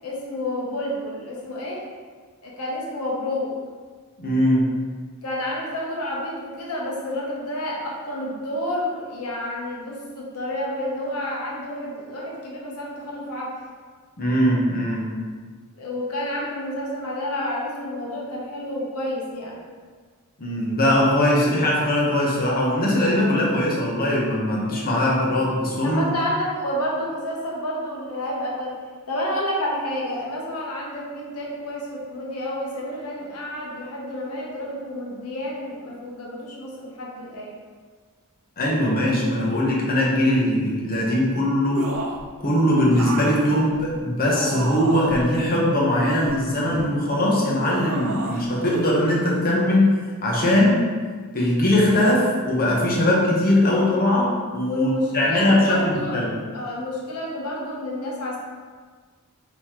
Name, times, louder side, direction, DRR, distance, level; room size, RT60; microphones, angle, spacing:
voice 1, 0.0-1.9 2.4-3.5 5.2-13.6 15.8-19.6 25.8-28.8 29.1-37.5 53.7-53.9 54.7-56.2 56.5-58.4, left 1 dB, 85° left, -3 dB, 0.9 m, -30 dB
voice 2, 4.2-4.7 14.2-15.2 20.4-26.1 38.6-41.9 42.4-50.8 51.3-56.4, left 1 dB, 40° left, -4 dB, 1.0 m, -20 dB
sound 1, 41.7-42.3 42.9-45.2 45.9-47.0 47.6-48.4 48.7-48.9, right 2 dB, 70° right, 0.6 m, -32 dB
5.5 x 3.0 x 3.0 m, 1.5 s
head